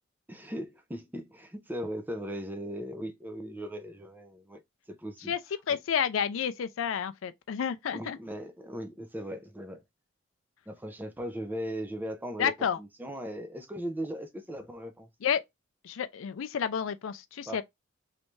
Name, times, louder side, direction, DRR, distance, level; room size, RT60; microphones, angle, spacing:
voice 1, 0.3-4.6 4.9-5.4 5.7-5.8 7.9-9.8 10.7-12.5 12.8-15.1 17.5-17.6, equal, 10° right, 0.5 m, -38 dB
voice 2, 5.7-8.2 12.4-12.8 15.2-15.4 15.8-17.6, left 8 dB, 70° left, 0.4 m, -30 dB
3.3 x 2.6 x 3.1 m
head